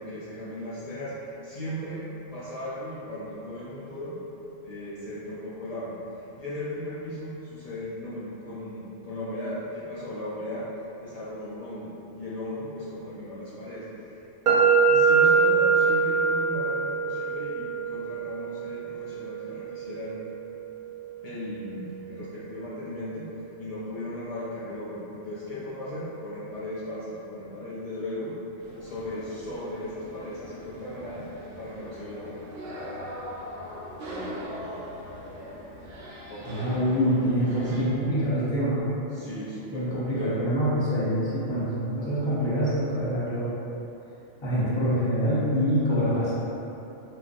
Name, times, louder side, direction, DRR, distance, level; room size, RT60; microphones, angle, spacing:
voice 1, 0.0-2.0 2.3-4.2 4.6-10.7 11.0-14.2 14.9-20.2 21.2-23.3 23.6-28.3 28.8-31.2 31.6-32.4 36.3-37.8 39.1-40.5, left 1 dB, 50° left, -10 dB, 0.4 m, -37 dB
sound 1, 14.5-22.3, right 5 dB, 50° right, 0.7 m, -25 dB
sound 2, 28.6-37.8, equal, 85° right, 1.0 m, -40 dB
voice 2, 36.4-39.0 39.7-43.5 44.4-46.3, equal, 25° left, -10 dB, 0.8 m, -25 dB
4.0 x 2.2 x 2.5 m, 3.0 s
omnidirectional pair, 1.3 m